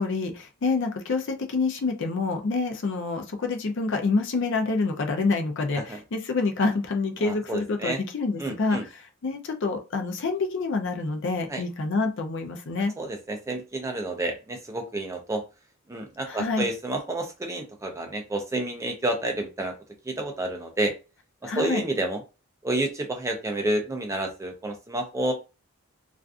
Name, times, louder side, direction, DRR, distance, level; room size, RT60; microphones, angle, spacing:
voice 1, 0.0-12.9 16.3-16.7 21.4-21.8, left 3 dB, 55° left, 5 dB, 0.4 m, -27 dB
voice 2, 7.2-8.0 8.4-8.8 11.5-11.6 13.0-15.4 15.9-19.7 20.1-20.9 21.4-22.2 22.6-25.3, right 2 dB, 15° right, 3 dB, 0.3 m, -29 dB
2.4 x 2.4 x 2.3 m, 0.30 s
head